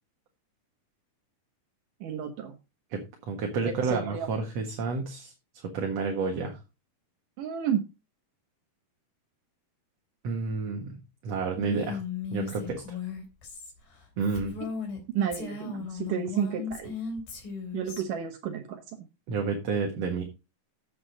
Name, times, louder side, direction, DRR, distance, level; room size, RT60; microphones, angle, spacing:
voice 1, 2.0-2.5 3.6-4.3 7.4-7.9 15.1-16.9 17.7-19.0, right 8 dB, 75° right, 4 dB, 2.7 m, -31 dB
voice 2, 2.9-5.3 5.6-6.6 10.2-11.0 11.2-12.0 12.3-13.0 14.2-14.6 19.3-20.2, right 4 dB, 55° right, 2 dB, 2.5 m, -30 dB
Female speech woman speaking, 11.5-15.0 15.3-18.0, left 5 dB, 85° left, 4.8 m, -36 dB
8.3 x 7.9 x 5.2 m, 0.28 s
omnidirectional pair, 4.0 m